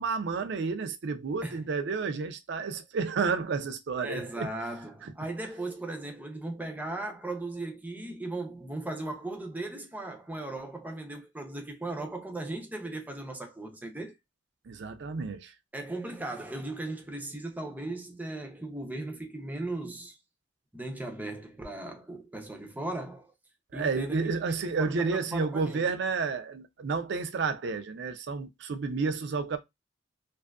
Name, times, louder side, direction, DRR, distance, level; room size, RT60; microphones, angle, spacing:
voice 1, 0.0-4.5 5.0-5.1 14.7-15.5 23.7-29.6, right 4 dB, 65° right, 0.4 m, -31 dB
voice 2, 4.0-14.1 15.7-20.2 20.7-23.3 23.7-24.4 24.8-25.9, right 2 dB, 10° right, 0.5 m, -37 dB
2.6 x 2.4 x 2.3 m
head